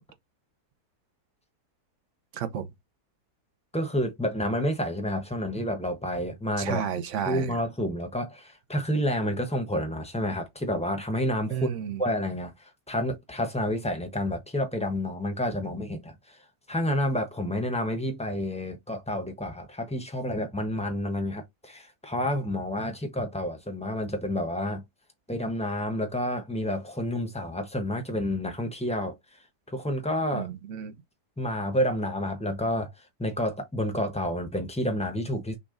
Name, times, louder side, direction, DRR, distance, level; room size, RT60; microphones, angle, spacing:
voice 1, 2.3-2.7 6.6-7.5 11.5-12.0 30.3-30.9, right 8 dB, 55° right, 1.0 m, -32 dB
voice 2, 3.7-6.8 7.3-11.7 12.0-16.4 16.7-24.8 25.3-29.2 29.7-30.5 31.4-32.9 33.2-35.6, left 1 dB, 5° left, 0.8 m, -29 dB
6.1 x 2.4 x 3.7 m
omnidirectional pair, 1.7 m